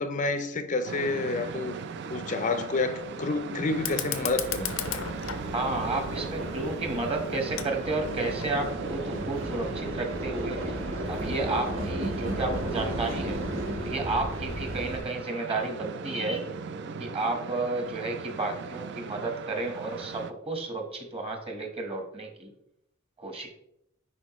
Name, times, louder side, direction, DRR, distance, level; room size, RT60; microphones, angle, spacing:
voice 1, 0.0-1.8 2.1-4.7, left 3 dB, 40° left, 9 dB, 0.4 m, -29 dB
sound 1, 0.8-20.3, right 5 dB, 55° right, 0.4 m, -39 dB
sound 2, 3.1-15.0, right 1 dB, 75° right, 1.4 m, -35 dB
Fire, 3.7-8.7, left 9 dB, 90° left, 0.6 m, -37 dB
voice 2, 5.4-10.8 11.1-13.4 13.8-16.5 17.0-22.5 23.2-23.5, right 2 dB, 30° right, 3 dB, 1.3 m, -32 dB
9.9 x 4.3 x 3.1 m, 0.79 s
head